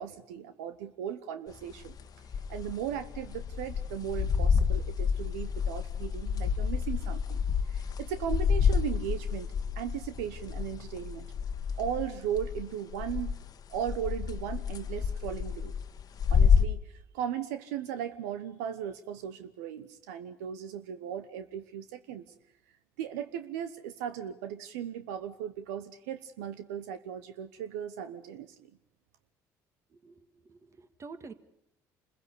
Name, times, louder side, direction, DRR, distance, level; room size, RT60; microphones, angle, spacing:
voice 1, 0.0-2.0 2.5-7.4 7.7-9.5 9.8-11.3 11.8-13.4 13.7-15.7 16.3-22.3 23.0-28.7, right 9 dB, 85° right, 10 dB, 1.0 m, -37 dB
sound 1, 1.5-12.6 12.9-13.4 13.7-16.7, left 6 dB, 50° left, 1.3 m, -29 dB
voice 2, 29.9-31.3, right 4 dB, 35° right, 10 dB, 1.9 m, -48 dB
27.0 x 16.0 x 8.3 m, 0.83 s
supercardioid pair, 70°, 8 cm